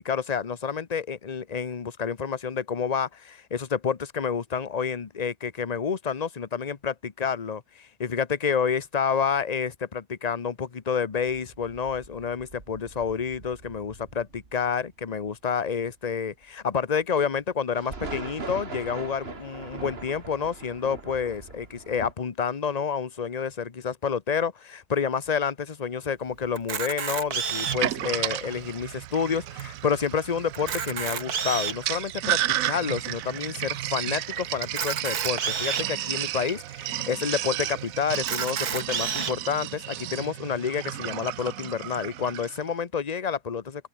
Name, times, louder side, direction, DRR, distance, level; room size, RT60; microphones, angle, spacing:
voice 1, 0.0-43.9, left 6 dB, 30° left, 1.0 m, -29 dB
sound 1, 11.1-15.3 15.8-15.9 16.8-16.9 17.4-17.5 17.7-22.1, right 3 dB, 40° right, 2.5 m, -41 dB
Camera, 26.6-27.9 28.6-28.7 28.9-29.0 29.6-29.7 30.5-31.9 32.5-32.6 34.6-35.9 36.6-36.7 36.9-37.0 38.1-39.3, right 6 dB, 85° right, 2.3 m, -30 dB
Sink (filling or washing), 27.6-42.6, right 13 dB, 70° right, 1.0 m, -32 dB
open air
omnidirectional pair, 1.6 m